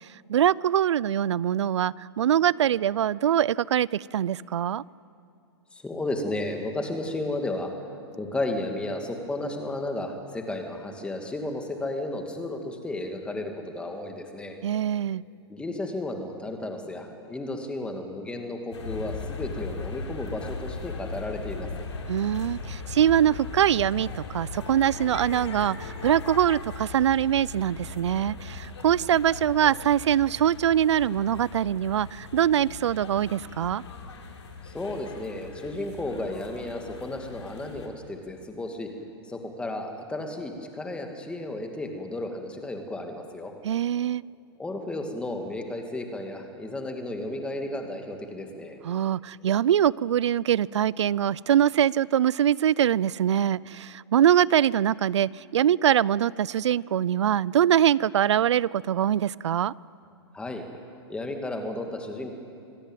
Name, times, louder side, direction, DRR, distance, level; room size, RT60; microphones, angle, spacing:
voice 1, 0.3-4.8 14.6-15.2 22.1-33.8 43.6-44.2 48.8-59.7, right 10 dB, 80° right, 23 dB, 0.5 m, -23 dB
voice 2, 5.7-7.7 8.2-14.6 15.5-21.7 34.6-38.9 39.3-43.5 44.6-48.8 60.3-60.6 61.1-62.3, left 2 dB, 5° left, 4 dB, 2.4 m, -33 dB
sound 1, 18.7-37.9, left 4 dB, 85° left, 4.3 m, -38 dB
26.0 x 17.0 x 9.1 m, 2.5 s
hypercardioid pair, 140°, 15 cm